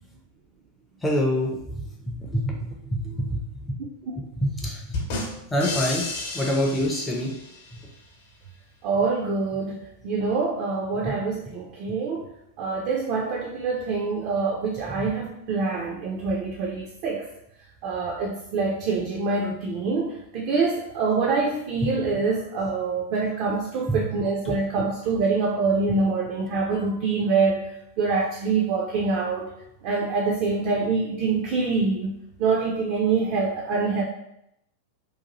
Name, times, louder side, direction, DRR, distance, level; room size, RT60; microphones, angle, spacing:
voice 1, 1.0-3.4 4.4-5.0 5.5-6.1 6.3-7.3 11.0-11.1 14.9-15.1 23.9-24.0 24.5-24.6, equal, 10° left, -2 dB, 0.5 m, -26 dB
sound 1, 4.9-7.8, left 3 dB, 55° left, 0.9 m, -32 dB
voice 2, 8.8-12.3 12.6-17.3 17.8-29.5 29.8-34.0, right 4 dB, 45° right, -2 dB, 0.5 m, -25 dB
2.7 x 2.3 x 2.9 m, 0.79 s
figure-of-eight pair, 90°, 0 cm